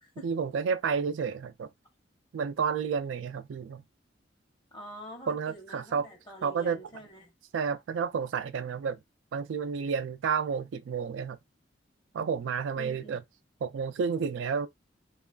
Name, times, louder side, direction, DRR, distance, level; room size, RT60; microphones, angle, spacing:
voice 1, 0.2-1.7 2.3-3.8 5.3-6.1 6.4-6.8 7.5-9.0 9.3-11.4 12.1-13.2 13.6-14.7, right 6 dB, 80° right, 0.3 m, -30 dB
voice 2, 4.7-7.3 12.7-13.2, equal, 25° left, 0.9 m, -46 dB
2.9 x 2.3 x 2.3 m
head